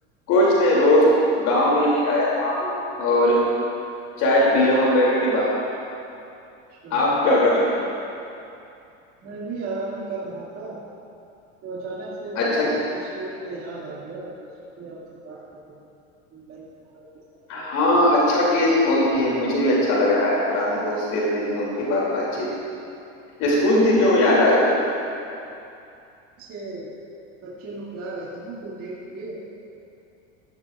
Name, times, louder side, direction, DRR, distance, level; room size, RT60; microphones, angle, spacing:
voice 1, 0.3-1.0 1.3-3.4 4.2-5.6 6.9-7.8 12.4-12.7 17.5-22.4 23.4-24.8, left 1 dB, 55° left, -5 dB, 2.7 m, -19 dB
voice 2, 9.2-10.8 11.6-15.7 16.3-16.6 16.9-17.2 17.5-17.7 26.4-27.0 27.4-29.4, right 3 dB, 45° right, -7 dB, 2.2 m, -35 dB
13.5 x 12.0 x 2.4 m, 2.7 s
supercardioid pair, 120°, 33 cm